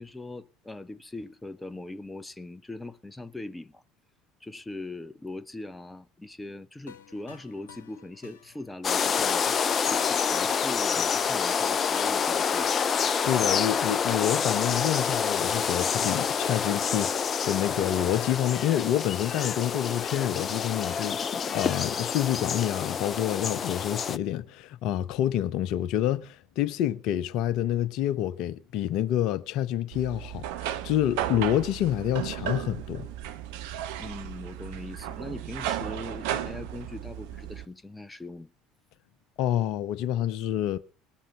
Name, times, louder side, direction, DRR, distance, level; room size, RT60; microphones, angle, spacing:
voice 1, 0.0-3.8 4.4-9.4 9.9-12.8 34.0-38.5, left 2 dB, 10° left, 0.9 m, -40 dB
sound 1, 6.9-18.3, left 8 dB, 75° left, 1.2 m, -51 dB
sound 2, 8.8-24.2, left 6 dB, 35° left, 0.7 m, -27 dB
voice 2, 13.2-21.2 21.5-33.1 39.4-40.8, left 11 dB, 55° left, 0.9 m, -28 dB
sound 3, 29.9-37.7, right 11 dB, 65° right, 1.2 m, -34 dB
19.5 x 7.2 x 6.8 m
figure-of-eight pair, 65°, 0 cm